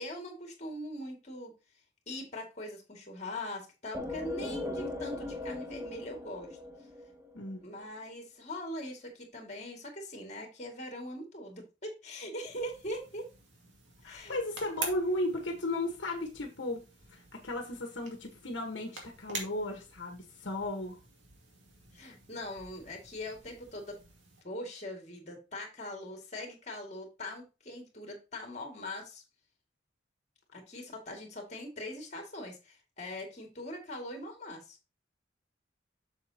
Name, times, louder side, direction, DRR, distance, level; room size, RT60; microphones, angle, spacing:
voice 1, 0.0-1.5 2.1-6.6 7.6-13.3 14.0-14.4 21.9-24.0 24.4-29.2 30.5-34.8, left 1 dB, 40° left, 3 dB, 2.4 m, -41 dB
sound 1, 3.9-7.5, left 2 dB, 15° right, 1.1 m, -39 dB
sound 2, 12.4-24.4, right 3 dB, 85° right, 2.3 m, -47 dB
voice 2, 14.0-16.8 17.1-21.0, left 1 dB, 75° left, 3 dB, 1.4 m, -35 dB
7.4 x 6.9 x 2.9 m, 0.29 s
head